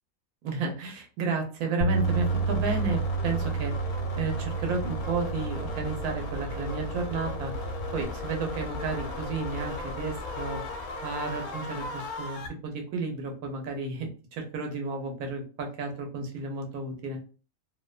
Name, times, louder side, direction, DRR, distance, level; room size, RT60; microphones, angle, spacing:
voice 1, 0.4-7.5 7.9-10.6 11.0-17.2, right 3 dB, 80° right, 3 dB, 1.2 m, -32 dB
Bass guitar, 1.8-8.1, right 4 dB, 65° left, 0.6 m, -31 dB
sound 1, 2.0-12.5, left 2 dB, 85° left, 1.1 m, -36 dB
2.7 x 2.1 x 2.3 m, 0.37 s
omnidirectional pair, 1.5 m